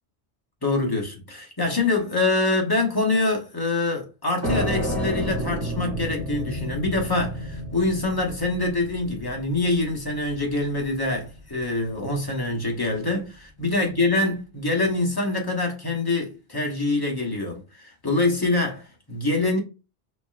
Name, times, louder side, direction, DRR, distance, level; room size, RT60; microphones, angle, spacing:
voice 1, 0.6-19.6, left 2 dB, 25° left, 0.9 m, -25 dB
sound 1, 4.4-11.8, equal, 15° right, 1.2 m, -31 dB
4.2 x 2.8 x 2.4 m
omnidirectional pair, 1.1 m